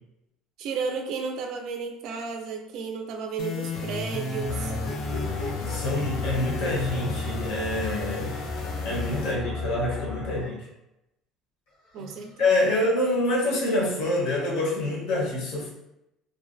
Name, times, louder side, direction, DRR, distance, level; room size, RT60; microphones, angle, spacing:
voice 1, 0.6-4.7 11.9-12.8, right 5 dB, 50° right, 4 dB, 0.3 m, -33 dB
sound 1, 3.4-9.3, left 2 dB, 50° left, 0.3 m, -33 dB
sound 2, 4.4-10.5, left 4 dB, ahead, 0.5 m, -34 dB
sound 3, 4.5-10.7 11.7-12.8, left 1 dB, 90° left, 1.1 m, -44 dB
voice 2, 5.6-8.3 8.8-10.7 12.4-15.7, left 2 dB, 70° left, -3 dB, 0.8 m, -26 dB
2.5 x 2.2 x 2.4 m, 0.87 s
cardioid pair, 170°, 0 cm